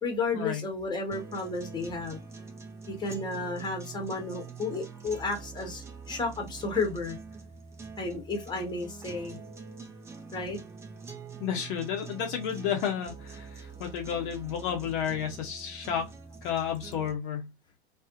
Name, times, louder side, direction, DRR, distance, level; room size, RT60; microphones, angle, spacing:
voice 1, 0.0-2.2 2.9-7.2 8.0-9.4 10.3-10.6, left 3 dB, 15° left, 0.9 m, -32 dB
sound 1, 1.1-17.1, right 5 dB, 10° right, 0.3 m, -45 dB
voice 2, 11.4-16.1 16.4-17.5, left 8 dB, 50° left, 0.6 m, -32 dB
2.4 x 2.0 x 2.6 m
figure-of-eight pair, 90°, 33 cm